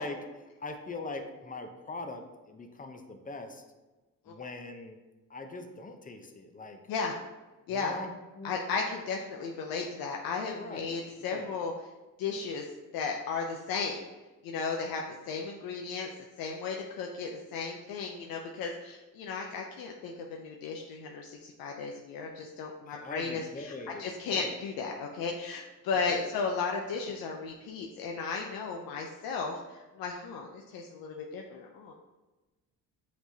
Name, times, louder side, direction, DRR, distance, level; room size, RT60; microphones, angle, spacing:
voice 1, 0.0-3.6 4.3-5.0 5.3-6.8 7.7-8.5 10.5-11.5 22.9-24.6 25.9-26.2, left 2 dB, 25° left, 6 dB, 0.6 m, -42 dB
voice 2, 7.7-8.0 8.4-11.7 12.2-12.7 12.9-14.0 14.4-16.1 16.4-31.9, left 5 dB, 85° left, 1 dB, 0.5 m, -35 dB
5.9 x 3.0 x 2.7 m, 1.2 s
cardioid pair, 80°, 35 cm